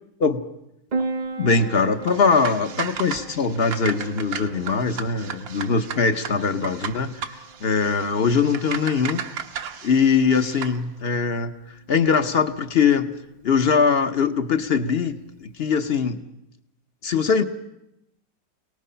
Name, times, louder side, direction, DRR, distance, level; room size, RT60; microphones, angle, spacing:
Piano, 0.9-15.9, right 3 dB, 60° right, 0.4 m, -39 dB
voice 1, 1.4-9.2 9.8-11.5 11.9-13.1 13.4-16.2 17.0-17.4, left 5 dB, 45° left, 8 dB, 0.8 m, -21 dB
sound 1, 2.0-10.8, right 8 dB, 85° right, 1.8 m, -35 dB
26.5 x 19.0 x 5.6 m, 0.83 s
omnidirectional pair, 2.0 m